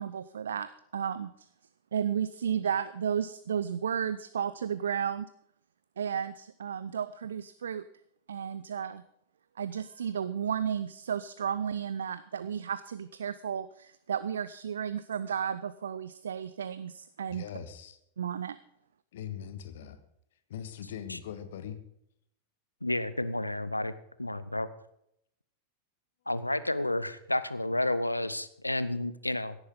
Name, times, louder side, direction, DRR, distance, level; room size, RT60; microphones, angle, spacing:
voice 1, 0.0-1.5 1.9-5.3 6.0-7.9 8.3-9.0 9.6-17.5 18.2-18.6, right 8 dB, 65° right, 15 dB, 0.5 m, -33 dB
voice 2, 17.3-18.0 19.1-20.0 20.5-21.8, left 9 dB, 60° left, 11 dB, 1.5 m, -41 dB
voice 3, 22.8-23.9 24.2-24.7 26.3-29.6, left 1 dB, 85° left, 15 dB, 0.8 m, -31 dB
16.5 x 9.9 x 5.4 m, 0.76 s
figure-of-eight pair, 90°, 0 cm